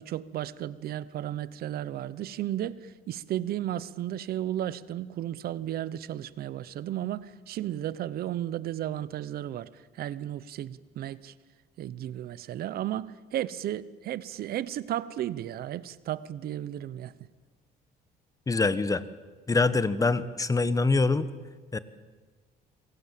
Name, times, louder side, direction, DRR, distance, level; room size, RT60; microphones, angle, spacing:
voice 1, 0.0-11.3 11.8-17.1, right 12 dB, 65° right, 0.9 m, -34 dB
voice 2, 18.5-19.0 19.5-21.3 21.7-21.8, left 3 dB, 20° left, 1.3 m, -24 dB
27.5 x 23.5 x 7.7 m
cardioid pair, 110°, 17 cm